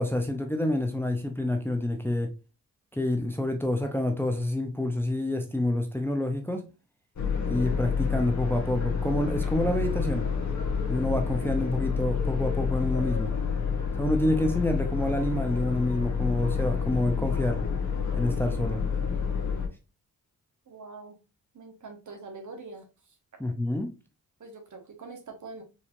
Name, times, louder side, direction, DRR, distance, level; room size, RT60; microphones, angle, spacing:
voice 1, 0.0-2.3 2.9-6.6 7.5-10.3 10.9-13.3 14.0-17.6 18.1-18.8 23.4-23.9, left 1 dB, 5° left, 0.6 m, -28 dB
sound 1, 7.2-19.7, left 6 dB, 50° left, 1.1 m, -29 dB
voice 2, 20.7-21.2 21.5-22.9 24.4-25.6, right 3 dB, 55° right, 1.2 m, -44 dB
4.6 x 2.7 x 2.5 m
cardioid pair, 70°, 36 cm